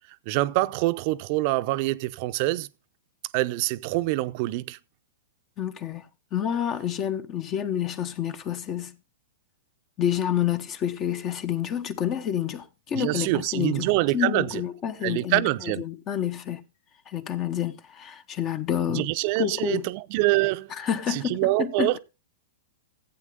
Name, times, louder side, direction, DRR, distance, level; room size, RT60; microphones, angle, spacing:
voice 1, 0.3-2.7 3.3-4.8 12.9-14.6 15.0-15.8 18.9-20.7 21.1-22.0, right 19 dB, 45° right, 0.7 m, -25 dB
voice 2, 5.6-6.0 6.3-8.9 10.0-16.6 17.1-19.1 19.4-19.9 20.7-22.0, left 9 dB, 30° left, 1.0 m, -29 dB
15.5 x 8.5 x 3.7 m
hypercardioid pair, 115°, 0 cm